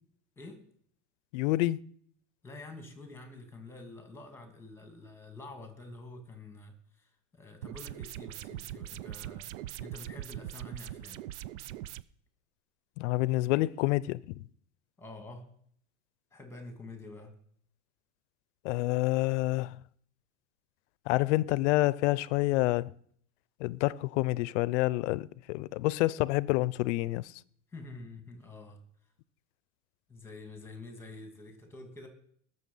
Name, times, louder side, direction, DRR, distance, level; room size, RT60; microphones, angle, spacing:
voice 1, 1.3-1.8 13.0-14.2 18.6-19.8 21.1-22.9 23.6-27.3, left 19 dB, 65° left, 0.6 m, -28 dB
voice 2, 2.4-9.5 9.8-11.2 15.0-15.4 16.3-17.3 27.7-28.8 30.1-32.1, left 2 dB, 5° left, 2.4 m, -47 dB
sound 1, 7.6-12.0, right 13 dB, 65° right, 0.6 m, -41 dB
20.0 x 6.9 x 5.5 m
supercardioid pair, 145°, 37 cm